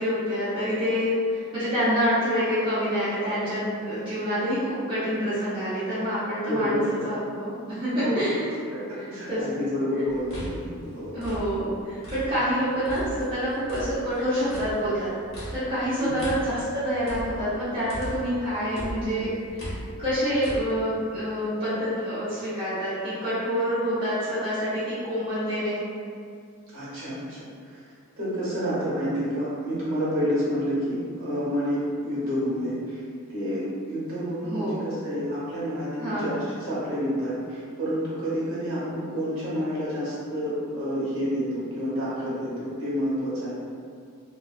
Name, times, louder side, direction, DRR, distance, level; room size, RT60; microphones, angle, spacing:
voice 1, 0.0-8.5 9.0-9.6 11.1-15.1 15.5-25.9 34.4-34.9 36.0-36.3, equal, 20° right, -14 dB, 0.6 m, -27 dB
voice 2, 6.5-6.9 8.0-8.2 8.7-11.1 12.3-12.4 16.0-16.1 26.7-27.8 28.2-33.0 33.3-43.5, equal, 60° right, -9 dB, 1.0 m, -29 dB
sound 1, 10.1-12.5 12.8-18.4 18.7-20.6, equal, 55° left, 0.8 m, -37 dB
2.3 x 2.3 x 2.3 m, 2.2 s
head